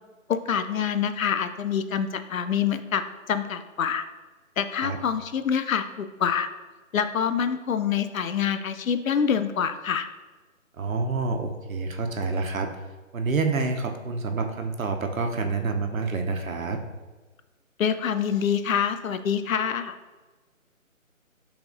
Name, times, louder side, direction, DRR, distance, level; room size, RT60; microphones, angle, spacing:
voice 1, 0.3-3.0 3.3-4.0 4.6-6.5 6.9-10.1 17.8-19.9, left 7 dB, 75° left, 10 dB, 0.5 m, -26 dB
voice 2, 10.8-12.7 13.1-16.8, right 4 dB, 80° right, 5 dB, 0.8 m, -28 dB
5.8 x 3.5 x 2.6 m, 1.2 s
hypercardioid pair, 170°, 41 cm